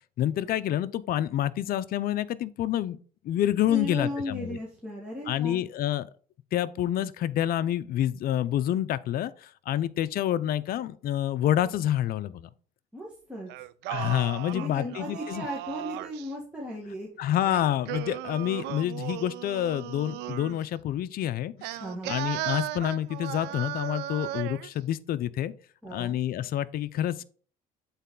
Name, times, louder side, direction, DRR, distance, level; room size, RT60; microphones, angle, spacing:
voice 1, 0.2-3.0 3.2-4.6 5.3-6.1 6.5-12.5 13.9-15.5 17.2-21.8 22.1-25.5 25.9-27.2, left 12 dB, 60° left, 0.5 m, -28 dB
voice 2, 3.7-5.6 12.9-13.5 14.5-17.1 21.8-22.2 25.8-26.2, left 1 dB, 5° right, 1.8 m, -36 dB
Singing, 13.5-16.3 17.4-20.6 21.6-24.7, right 15 dB, 85° right, 0.4 m, -36 dB
8.1 x 4.1 x 3.7 m
cardioid pair, 110°, 17 cm